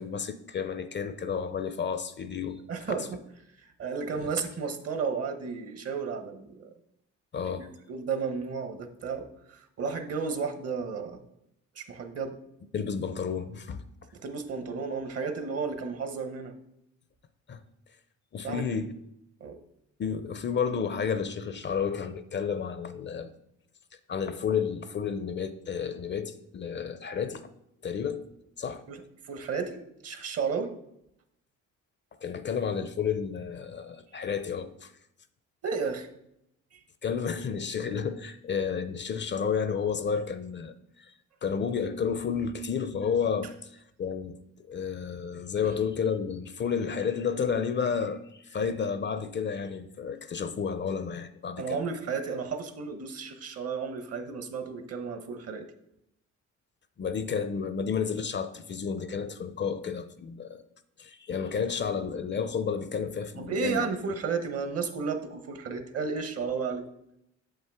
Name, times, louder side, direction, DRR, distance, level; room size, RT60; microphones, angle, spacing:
voice 1, 0.0-2.6 2.9-3.1 4.1-4.3 7.3-7.7 12.7-13.8 17.5-17.6 18.3-18.9 20.0-23.3 24.1-27.4 27.8-28.3 28.6-28.8 32.2-34.9 37.0-41.1 41.4-44.4 44.7-51.8 57.0-60.6 61.0-63.9, left 6 dB, 40° left, 0.5 m, -31 dB
voice 2, 2.7-3.1 3.6-6.7 7.4-11.2 11.8-12.4 14.2-16.5 18.4-18.7 19.4-19.6 28.9-30.7 35.6-36.1 36.7-36.8 51.6-55.6 63.3-66.9, right 5 dB, 55° right, 1.0 m, -33 dB
7.1 x 5.6 x 3.5 m
cardioid pair, 90°, 30 cm